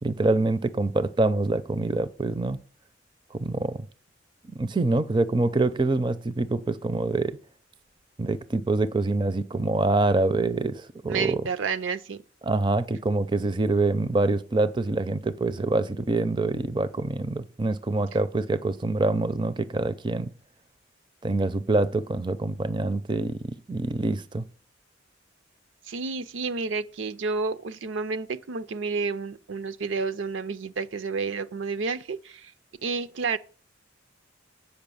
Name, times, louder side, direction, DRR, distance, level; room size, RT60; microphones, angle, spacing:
voice 1, 0.0-2.6 3.3-3.8 4.6-7.4 8.2-11.4 12.4-20.3 21.2-24.5, right 2 dB, 25° right, 0.4 m, -25 dB
voice 2, 11.1-12.2 25.9-32.5 32.8-33.4, right 4 dB, 80° right, 0.5 m, -30 dB
8.0 x 5.5 x 6.8 m
head